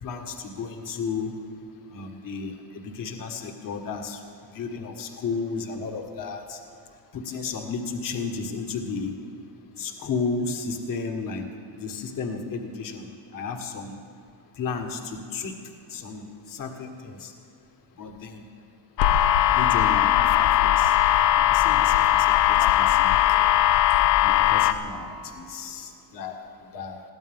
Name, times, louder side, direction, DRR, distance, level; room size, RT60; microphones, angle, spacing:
voice 1, 0.0-1.4 1.9-4.2 4.5-6.6 7.1-9.1 9.8-11.5 11.7-13.9 14.6-15.5 15.9-17.3 18.0-18.4 19.5-21.0 21.5-23.2 24.2-26.4 26.7-27.0, left 4 dB, 50° left, 3 dB, 1.7 m, -33 dB
sound 1, 19.0-24.7, left 12 dB, 75° left, 0.8 m, -19 dB
22.0 x 15.5 x 3.7 m, 2.4 s
cardioid pair, 120°, 43 cm